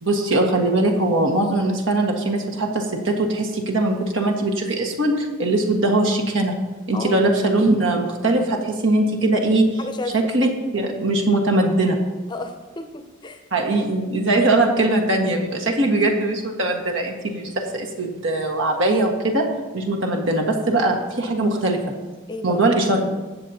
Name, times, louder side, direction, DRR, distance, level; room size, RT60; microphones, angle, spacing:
voice 1, 0.0-6.6 6.9-9.8 10.1-12.0 13.5-19.5 19.7-21.9 22.4-23.2, right 2 dB, 70° right, 1 dB, 1.6 m, -21 dB
voice 2, 6.9-7.2 9.8-10.3 12.3-13.4 13.7-13.8 14.3-14.4 20.0-20.2 22.3-22.6, left 2 dB, 20° left, 6 dB, 0.7 m, -33 dB
19.0 x 7.4 x 2.8 m, 1.2 s
head